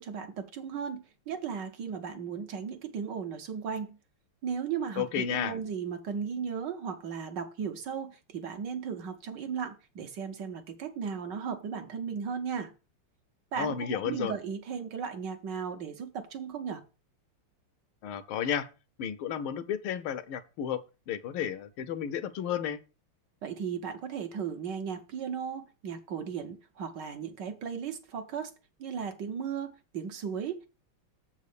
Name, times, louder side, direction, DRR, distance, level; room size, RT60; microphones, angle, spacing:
voice 1, 0.0-4.0 4.4-12.7 13.5-16.8 23.4-28.5 28.8-30.7, right 6 dB, 65° right, 1.3 m, -36 dB
voice 2, 5.0-5.6 13.6-14.3 18.0-18.7 19.0-22.8, left 9 dB, 75° left, 1.5 m, -32 dB
7.3 x 4.2 x 6.5 m
omnidirectional pair, 2.4 m